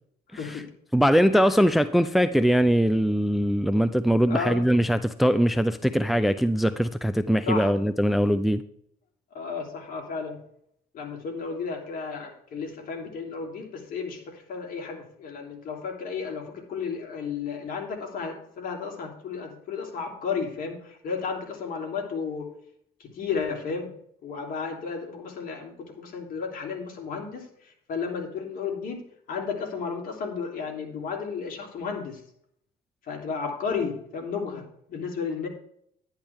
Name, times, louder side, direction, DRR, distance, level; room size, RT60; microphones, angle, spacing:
voice 1, 0.3-0.7 1.3-1.6 4.3-4.6 7.5-7.7 9.3-10.4 10.9-22.5 23.0-23.9 24.2-29.0 29.3-32.2 33.1-35.5, left 5 dB, 55° left, 1 dB, 3.3 m, -33 dB
voice 2, 0.9-8.6, equal, ahead, 12 dB, 0.5 m, -22 dB
11.0 x 10.5 x 3.5 m, 0.69 s
cardioid pair, 110°, 17 cm